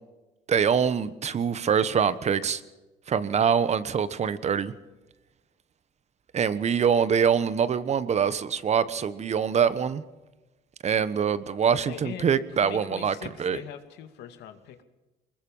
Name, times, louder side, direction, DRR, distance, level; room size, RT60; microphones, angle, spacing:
voice 1, 0.5-2.6 3.1-4.7 6.3-10.0 10.8-13.6, right 7 dB, 40° right, 15 dB, 1.2 m, -24 dB
voice 2, 11.8-14.8, left 10 dB, 80° left, 8 dB, 2.4 m, -41 dB
23.5 x 21.0 x 5.6 m, 1.1 s
cardioid pair, 110°, 17 cm